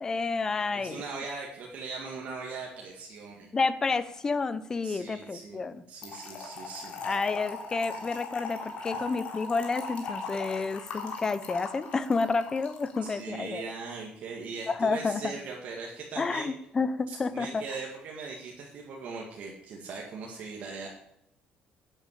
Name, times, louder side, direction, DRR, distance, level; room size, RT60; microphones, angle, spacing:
voice 1, 0.0-1.0 3.5-5.8 7.0-13.6 14.7-15.3 16.2-17.6, left 4 dB, 20° left, 14 dB, 0.7 m, -30 dB
voice 2, 0.7-3.5 4.8-7.0 7.9-8.0 8.9-9.0 13.0-16.5 17.1-20.9, right 4 dB, 50° right, -1 dB, 2.0 m, -40 dB
Trickle dribble / Fill (with liquid), 6.0-13.1, left 4 dB, 50° left, 3.1 m, -39 dB
10.5 x 8.8 x 8.4 m, 0.80 s
cardioid pair, 175°, 3 cm